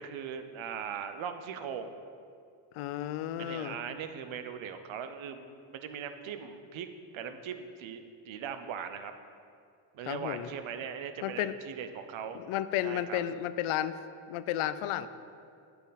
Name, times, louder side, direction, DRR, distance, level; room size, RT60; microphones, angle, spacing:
voice 1, 0.0-1.9 3.4-6.9 7.1-9.1 9.9-12.4 12.8-13.2, right 7 dB, 70° right, 9 dB, 0.8 m, -40 dB
voice 2, 2.7-3.8 10.0-10.5 11.2-11.6 12.3-14.0 14.3-15.1, left 12 dB, 85° left, 13 dB, 0.5 m, -32 dB
9.0 x 6.9 x 4.0 m, 2.4 s
cardioid pair, 75°, 49 cm